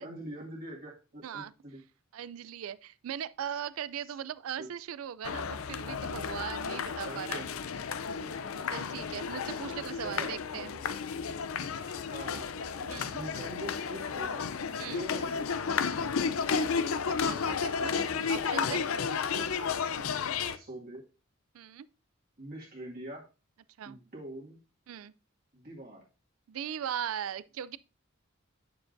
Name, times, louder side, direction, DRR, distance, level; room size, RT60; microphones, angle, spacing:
voice 1, 0.0-1.8 4.0-4.1 4.6-4.7 7.0-7.5 10.0-10.4 11.8-14.5 14.7-16.4 20.5-21.0 22.4-23.3 23.8-24.6 25.5-26.0, right 1 dB, 45° right, 1.9 m, -44 dB
voice 2, 2.1-7.5 8.7-10.7 12.9-13.2 14.8-15.1 17.1-18.8 21.5-21.9 23.8-24.0 24.9-25.1 26.5-27.8, right 9 dB, 85° right, 0.4 m, -39 dB
sound 1, 5.2-20.6, left 6 dB, 85° left, 0.5 m, -32 dB
9.2 x 6.8 x 2.6 m
head